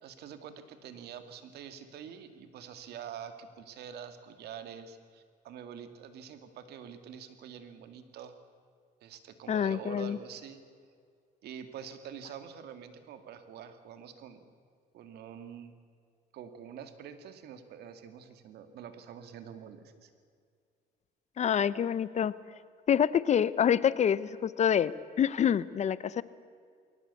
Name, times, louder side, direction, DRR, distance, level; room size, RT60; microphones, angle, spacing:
voice 1, 0.0-8.3 9.0-10.6 11.4-14.4 14.9-15.7 16.3-20.1, right 8 dB, 75° right, 9 dB, 2.2 m, -46 dB
voice 2, 9.5-10.2 21.4-22.3 22.9-26.2, left 8 dB, 45° left, 18 dB, 0.7 m, -27 dB
22.0 x 18.0 x 8.4 m, 2.2 s
cardioid pair, 110°, 17 cm